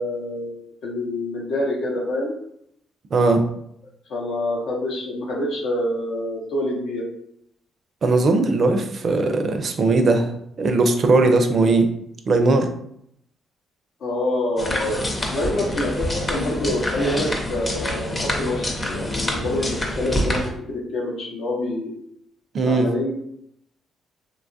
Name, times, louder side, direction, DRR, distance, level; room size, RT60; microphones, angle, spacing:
voice 1, 0.0-2.3 4.1-7.1 14.0-20.4 20.7-21.9 22.6-23.1, left 1 dB, 75° left, -2 dB, 0.6 m, -26 dB
voice 2, 3.1-3.4 8.0-11.9 12.3-12.7 22.5-22.9, right 3 dB, 50° right, 6 dB, 0.4 m, -19 dB
sound 1, 14.6-20.5, left 1 dB, 20° left, 0.6 m, -26 dB
2.8 x 2.3 x 2.6 m, 0.72 s
cardioid pair, 90°, 0 cm